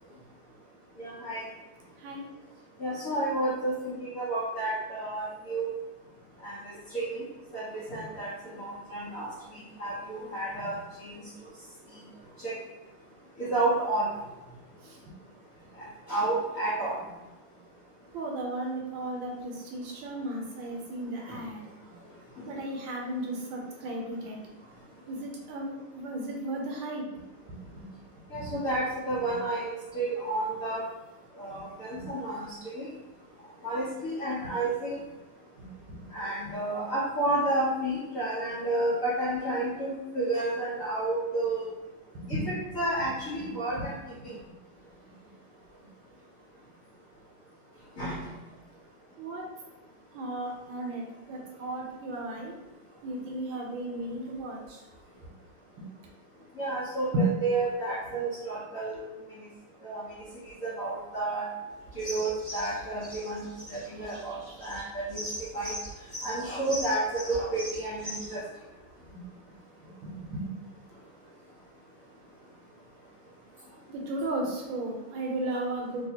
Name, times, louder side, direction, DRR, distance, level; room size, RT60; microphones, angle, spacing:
voice 1, 1.0-1.4 2.8-5.7 6.4-6.5 6.9-7.2 7.5-8.3 8.6-9.3 9.5-11.1 12.4-12.5 13.4-14.1 16.1-16.9 28.3-30.8 31.4-32.5 32.7-32.9 33.6-35.0 36.1-41.7 42.3-43.9 44.2-44.3 48.0-48.2 56.6-59.0 59.8-60.0 60.6-61.5 62.0-65.8 66.2-68.4, right 2 dB, 60° left, -9 dB, 0.8 m, -31 dB
voice 2, 18.1-21.6 22.5-24.4 25.1-27.0 27.5-27.9 28.3-28.6 29.3-29.4 31.5-31.7 32.0-32.1 35.6-36.0 36.5-36.6 42.1-42.5 43.4-43.8 49.2-49.4 50.1-51.0 51.3-52.5 53.0-54.8 57.1-57.2 69.0-69.2 69.8-70.5 73.9-76.1, right 1 dB, 75° right, -1 dB, 1.3 m, -35 dB
sound 1, 61.9-68.4, equal, 20° left, 1.0 m, -40 dB
3.2 x 2.7 x 2.7 m, 1.1 s
omnidirectional pair, 2.3 m